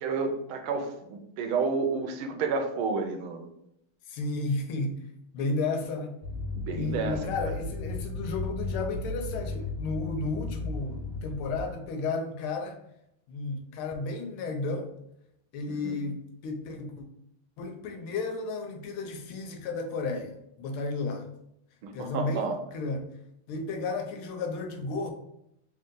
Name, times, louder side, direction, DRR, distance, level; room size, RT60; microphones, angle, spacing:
voice 1, 0.0-3.5 6.6-7.5 15.7-16.0 21.8-22.6, right 4 dB, 85° right, 5 dB, 1.5 m, -31 dB
voice 2, 4.1-4.9 5.3-6.2 6.7-12.8 13.3-14.9 15.5-17.0 17.6-21.3 21.9-23.1 23.5-25.1, left 3 dB, 85° left, 5 dB, 1.6 m, -33 dB
sound 1, 6.2-11.7, left 2 dB, 40° left, 0.6 m, -35 dB
4.0 x 2.7 x 3.7 m, 0.78 s
omnidirectional pair, 2.3 m